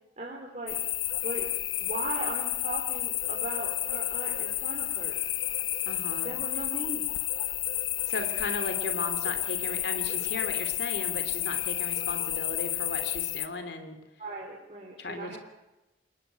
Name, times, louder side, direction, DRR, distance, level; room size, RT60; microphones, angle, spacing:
voice 1, 0.2-0.8 1.2-1.4 1.8-5.1 6.2-7.1 14.2-15.4, right 2 dB, 35° right, -3 dB, 4.4 m, -38 dB
sound 1, 0.7-13.5, left 14 dB, 90° left, 1.4 m, -31 dB
voice 2, 5.9-6.3 8.0-14.0 15.0-15.4, left 2 dB, 65° left, 8 dB, 2.9 m, -36 dB
29.0 x 19.0 x 9.2 m, 1.0 s
head